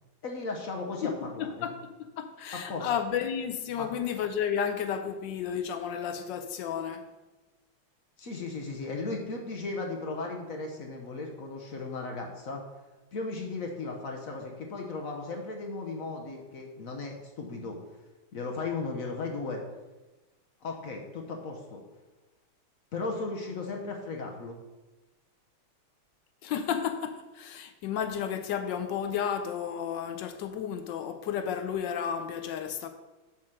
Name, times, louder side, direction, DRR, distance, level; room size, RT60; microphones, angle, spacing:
voice 1, 0.2-1.7 2.5-2.9 3.8-3.9 8.2-12.6 13.1-17.8 18.3-19.6 20.6-21.8 22.9-24.6, left 3 dB, 55° left, 1.0 m, -36 dB
voice 2, 1.4-7.1 26.4-32.9, left 8 dB, 75° left, 1.1 m, -32 dB
7.3 x 4.4 x 6.5 m
omnidirectional pair, 2.4 m